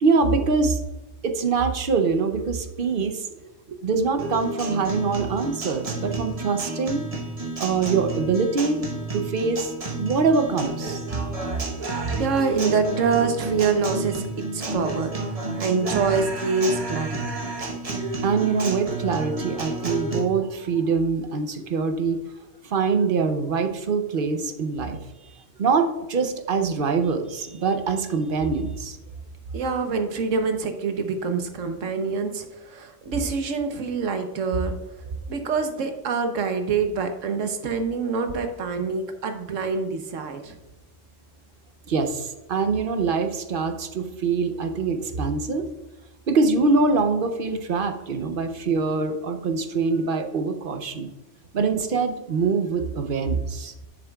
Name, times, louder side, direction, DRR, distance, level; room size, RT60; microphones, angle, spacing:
voice 1, 0.0-0.8 1.2-3.3 3.8-7.0 7.6-8.8 9.1-11.0 18.2-22.2 22.6-25.0 25.6-29.0 41.9-45.7 46.3-51.1 51.5-53.9, right 4 dB, 55° right, 6 dB, 0.8 m, -24 dB
Guitar, 4.2-20.2, right 2 dB, 30° right, 1.0 m, -31 dB
voice 2, 11.8-17.2 17.5-17.7 29.5-40.6, right 5 dB, 90° right, 6 dB, 1.3 m, -26 dB
9.9 x 7.4 x 2.3 m, 1.0 s
omnidirectional pair, 1.3 m